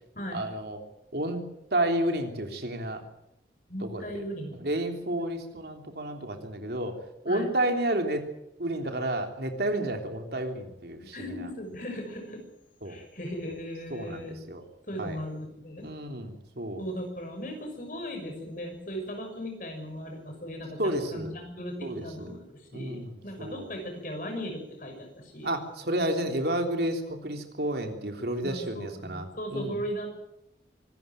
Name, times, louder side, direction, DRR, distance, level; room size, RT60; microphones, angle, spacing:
voice 1, 0.3-0.8 1.1-1.4 1.7-3.0 3.8-4.0 4.6-7.0 7.2-8.2 8.6-11.5 12.8-13.0 13.9-14.6 15.0-15.2 15.8-16.8 20.8-21.3 21.8-22.4 22.7-23.7 25.4-29.7, right 1 dB, 70° right, 4 dB, 3.4 m, -31 dB
voice 2, 3.7-4.6 5.1-5.2 7.3-7.5 11.1-12.4 12.8-14.4 14.9-15.9 16.8-25.5 28.4-30.1, equal, 50° left, 4 dB, 6.4 m, -37 dB
24.5 x 13.5 x 9.1 m, 0.83 s
head